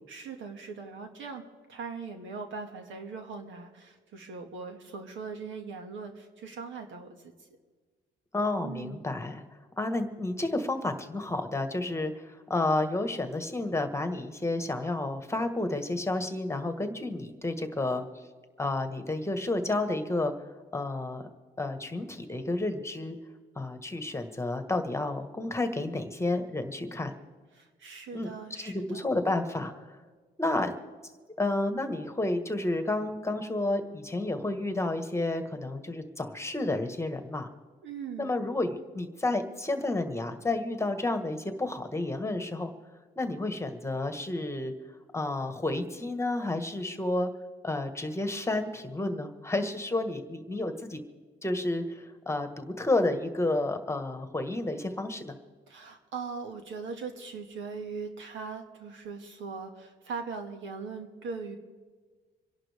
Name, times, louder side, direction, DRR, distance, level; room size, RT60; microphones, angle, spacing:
voice 1, 0.1-7.3 8.6-9.0 27.5-29.1 37.8-38.3 55.7-61.6, right 5 dB, 75° right, 4 dB, 2.1 m, -40 dB
voice 2, 8.3-9.4 9.8-18.1 18.6-20.3 20.7-21.2 21.6-23.2 23.6-27.1 28.1-28.3 28.6-29.9 30.4-30.7 31.4-37.5 38.2-42.7 43.2-44.7 45.1-47.3 47.6-51.0 51.4-55.3, left 2 dB, 15° left, 7 dB, 1.6 m, -31 dB
27.0 x 11.5 x 3.5 m, 1.4 s
cardioid pair, 90°, 20 cm